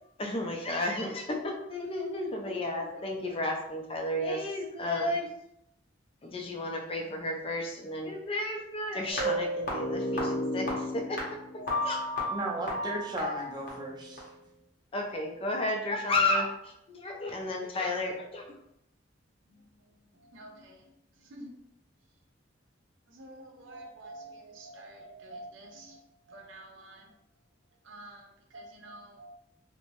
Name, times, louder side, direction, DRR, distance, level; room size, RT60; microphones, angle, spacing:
voice 1, 0.2-5.3 6.2-11.2 11.5-12.0 14.9-18.4, left 2 dB, 30° left, 1 dB, 0.4 m, -32 dB
sound 1, 9.1-14.2, left 1 dB, 50° left, 0.8 m, -33 dB
voice 2, 12.3-14.3, right 1 dB, 25° right, -2 dB, 0.5 m, -35 dB
voice 3, 19.5-21.6 23.1-27.2 27.8-29.4, right 1 dB, 80° right, 1 dB, 0.6 m, -49 dB
2.7 x 2.1 x 2.9 m, 0.79 s
head